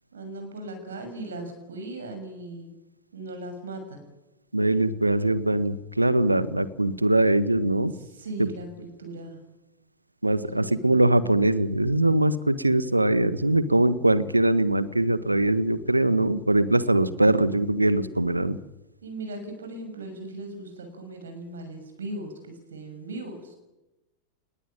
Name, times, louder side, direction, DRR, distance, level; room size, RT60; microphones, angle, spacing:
voice 1, 0.1-2.7 3.1-4.0 8.0-9.4 10.4-10.8 19.0-23.5, right 2 dB, 65° right, 6 dB, 6.7 m, -38 dB
voice 2, 4.5-7.9 8.4-8.5 10.2-18.6, right 1 dB, 85° right, 16 dB, 1.5 m, -22 dB
27.0 x 20.5 x 9.1 m, 0.99 s
figure-of-eight pair, 90°, 0 cm